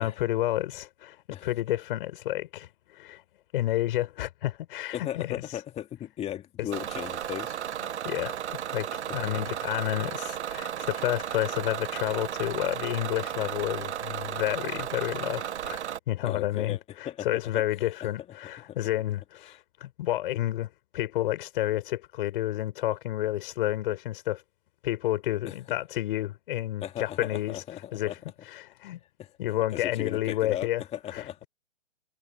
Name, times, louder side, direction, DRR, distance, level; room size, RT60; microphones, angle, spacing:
voice 1, 0.0-3.2 3.5-5.4 8.0-8.4 8.7-15.8 16.1-24.4 24.8-27.6 27.9-28.2 28.4-29.0 29.4-30.8 31.1-31.2, left 14 dB, 45° left, 5.6 m, -30 dB
voice 2, 4.9-7.6 9.1-9.4 16.2-17.6 18.0-18.1 18.7-18.8 19.4-19.6 25.5-25.6 26.8-28.2 29.2-29.3 29.7-31.4, left 11 dB, 15° left, 2.3 m, -37 dB
Bus / Engine, 6.7-16.0, right 10 dB, 60° right, 1.2 m, -34 dB
hypercardioid pair, 135°, 37 cm